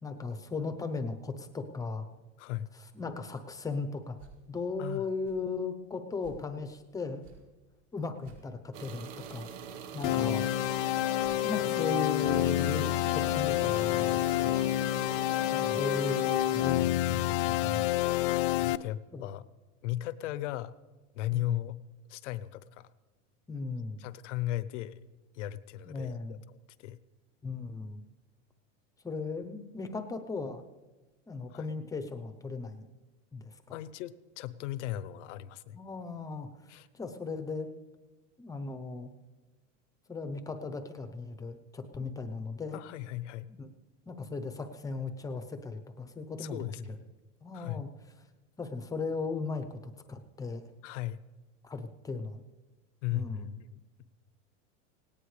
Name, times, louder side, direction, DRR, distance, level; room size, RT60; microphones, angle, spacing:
voice 1, 0.0-2.1 2.9-4.2 4.5-7.2 7.9-9.5 9.9-10.5 11.4-14.6 15.5-17.9 19.1-19.3 21.3-21.6 23.5-24.0 25.8-26.4 27.4-28.0 29.0-30.6 31.3-32.9 33.3-33.8 35.7-37.7 38.4-39.1 40.1-42.8 43.6-43.7 44.1-46.6 47.4-47.9 48.6-50.7 51.6-52.4 53.1-53.5, left 4 dB, 10° left, 8 dB, 0.8 m, -37 dB
sound 1, 4.2-4.4 5.2-5.4 6.2-6.5 7.2-7.4 8.2-8.4 9.2-9.4 10.2-10.4 11.2-11.4 12.2-12.4 13.2-13.4, right 4 dB, 85° right, 6.1 m, -55 dB
sound 2, 8.7-16.7, right 7 dB, 70° right, 1.5 m, -44 dB
sound 3, 10.0-18.8, left 15 dB, 50° left, 0.4 m, -28 dB
voice 2, 18.6-19.5 19.8-20.8 21.1-21.8 22.1-22.9 24.0-25.1 25.3-26.4 26.8-27.0 31.5-31.7 33.7-35.8 36.7-36.9 42.7-43.5 46.4-46.9 47.5-47.8 50.8-51.2 53.0-53.8, left 14 dB, 75° left, 15 dB, 0.8 m, -36 dB
18.5 x 17.5 x 3.3 m, 1.2 s
supercardioid pair, 145°, 36 cm